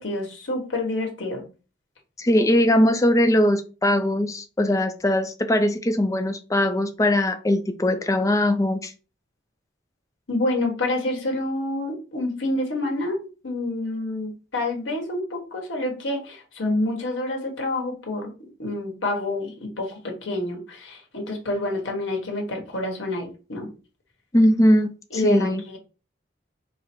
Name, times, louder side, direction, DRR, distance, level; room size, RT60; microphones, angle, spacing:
voice 1, 0.0-1.5 2.3-2.4 10.3-18.3 18.6-23.7 25.1-25.5, left 2 dB, 85° left, 1 dB, 1.4 m, -28 dB
voice 2, 2.2-8.9 24.3-25.6, left 1 dB, 15° left, 7 dB, 0.4 m, -20 dB
4.7 x 2.0 x 4.4 m, 0.34 s
head